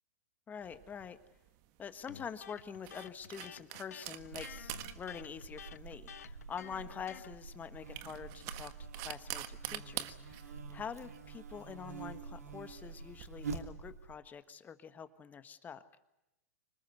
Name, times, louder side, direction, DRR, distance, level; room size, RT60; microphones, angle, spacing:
voice 1, 0.5-1.2 1.8-15.8, left 7 dB, 20° left, 11 dB, 1.5 m, -46 dB
sound 1, 0.6-13.3, right 14 dB, 45° right, 1.5 m, -47 dB
Electric guitar, 2.1-7.4, left 9 dB, 75° left, 0.8 m, -51 dB
Buzz, 4.2-14.1, right 4 dB, 85° right, 2.9 m, -47 dB
25.5 x 20.0 x 8.2 m, 0.90 s
hypercardioid pair, 115°, 8 cm